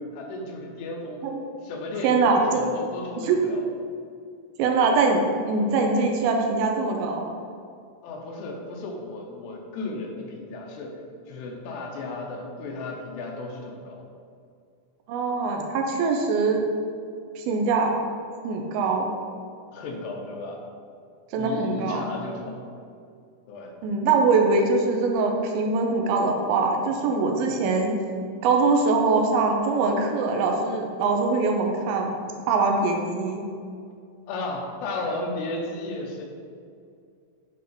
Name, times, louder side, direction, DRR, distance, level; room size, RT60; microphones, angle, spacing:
voice 1, 0.1-1.2 1.6-3.6 8.0-14.1 19.7-20.6 21.3-22.6 23.5-23.8 34.3-36.2, left 2 dB, 80° left, 1 dB, 2.9 m, -34 dB
voice 2, 2.0-2.6 3.2-3.4 4.6-7.2 15.1-16.6 17.4-17.9 18.4-19.1 21.3-22.1 23.8-27.9 28.4-32.1 32.5-33.4, right 4 dB, 80° right, 2 dB, 2.3 m, -23 dB
7.9 x 3.6 x 4.3 m, 2.3 s
omnidirectional pair, 4.8 m